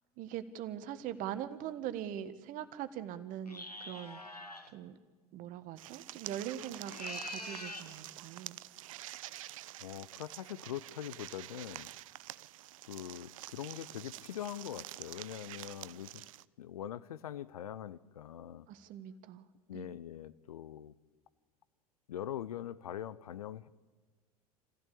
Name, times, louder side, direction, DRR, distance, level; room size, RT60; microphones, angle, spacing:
voice 1, 0.2-5.0 5.3-8.6 18.7-19.5 19.7-19.9, right 10 dB, 45° right, 12 dB, 1.5 m, -42 dB
sound 1, 3.4-4.7 6.8-7.9, left 1 dB, 90° left, 1.5 m, -44 dB
sound 2, 5.8-16.4, right 16 dB, 60° right, 0.6 m, -48 dB
voice 2, 9.8-11.9 12.9-16.2 16.6-18.7 19.7-20.9 22.1-23.7, left 11 dB, 70° left, 17 dB, 0.8 m, -43 dB
27.5 x 15.5 x 8.6 m, 1.4 s
figure-of-eight pair, 80°, 20 cm